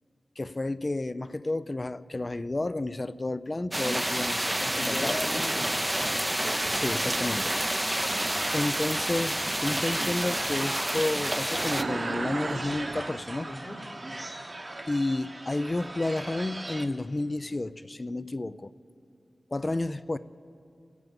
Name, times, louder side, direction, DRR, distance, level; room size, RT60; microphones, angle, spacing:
voice 1, 0.4-5.2 6.4-7.6 8.5-13.5 14.9-18.7 19.5-20.2, left 2 dB, 40° left, 0.4 m, -31 dB
sound 1, 3.7-11.8, right 1 dB, 20° right, 0.5 m, -29 dB
voice 2, 4.6-6.2 13.5-13.8, left 2 dB, 85° left, 3.1 m, -37 dB
sound 2, 7.9-16.9, right 1 dB, 40° right, 0.9 m, -39 dB
sound 3, 11.5-13.8, right 3 dB, 65° right, 0.3 m, -35 dB
26.0 x 9.4 x 5.3 m
cardioid pair, 45°, 0 cm